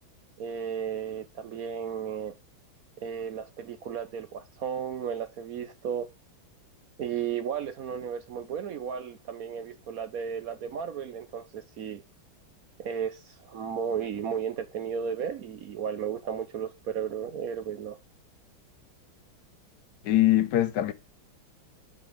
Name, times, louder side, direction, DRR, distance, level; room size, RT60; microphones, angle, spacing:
voice 1, 0.4-2.4 3.0-6.1 7.0-12.0 12.8-18.0, right 7 dB, 65° right, 0.9 m, -34 dB
voice 2, 20.0-20.9, left 14 dB, 65° left, 1.3 m, -22 dB
7.1 x 5.1 x 6.0 m
omnidirectional pair, 2.2 m